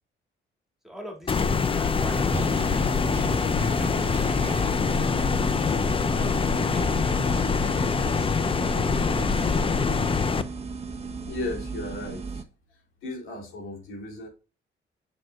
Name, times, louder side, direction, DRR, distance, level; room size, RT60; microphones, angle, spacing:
voice 1, 0.8-3.1 3.8-4.7 5.3-7.4 8.0-9.3, right 1 dB, ahead, 1 dB, 2.5 m, -41 dB
sound 1, 1.3-10.4, left 5 dB, 25° left, 0.6 m, -24 dB
sound 2, 2.1-12.4, right 4 dB, 30° right, 1.0 m, -36 dB
voice 2, 11.3-12.4 13.0-14.3, left 2 dB, 80° left, 0 dB, 3.2 m, -35 dB
6.4 x 6.2 x 2.4 m, 0.33 s
cardioid pair, 90°, 20 cm